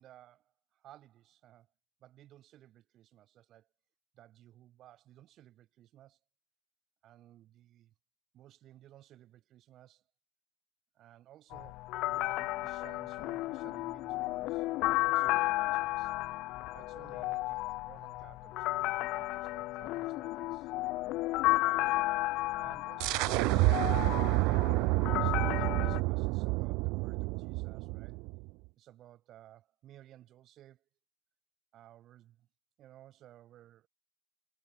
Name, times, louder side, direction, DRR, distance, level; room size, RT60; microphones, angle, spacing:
voice 1, 0.0-1.7 2.0-3.7 4.1-6.2 7.0-7.9 8.3-10.0 10.9-16.1 16.7-20.7 21.8-22.1 22.6-23.8 24.5-28.2 28.8-30.8 31.7-32.5 32.8-33.9, right 13 dB, 45° right, 6.3 m, -57 dB
sound 1, 11.5-26.0, left 19 dB, 60° left, 1.8 m, -33 dB
sound 2, 23.0-28.5, right 26 dB, 65° right, 0.4 m, -29 dB
cardioid pair, 135°, 0 cm